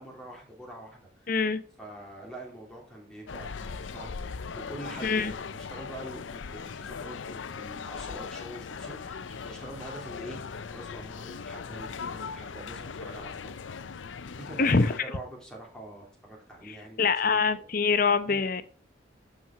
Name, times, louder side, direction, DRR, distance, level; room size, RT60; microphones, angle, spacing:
voice 1, 0.0-1.4 1.8-13.6 14.3-17.6 18.3-18.4, right 1 dB, 5° left, -2 dB, 3.0 m, -45 dB
voice 2, 1.3-1.6 5.0-5.3 14.6-14.9 16.7-18.6, left 4 dB, 45° left, 12 dB, 0.7 m, -24 dB
sound 1, 3.3-15.0, left 5 dB, 80° left, 0.6 m, -39 dB
12.5 x 4.6 x 5.8 m, 0.42 s
head